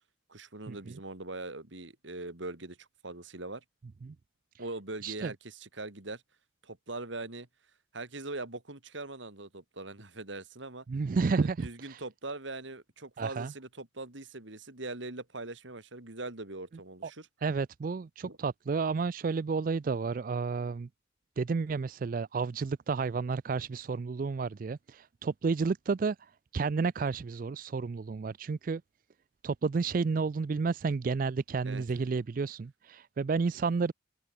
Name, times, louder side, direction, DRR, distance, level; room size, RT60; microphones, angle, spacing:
voice 1, 0.3-3.6 4.6-6.2 6.6-7.5 7.9-10.8 11.3-17.3 18.2-18.4 31.6-31.8, right 2 dB, 70° right, 2.8 m, -41 dB
voice 2, 10.9-12.0 13.2-13.5 17.4-20.9 21.4-26.2 26.5-28.8 29.4-33.9, right 4 dB, 45° right, 0.4 m, -31 dB
head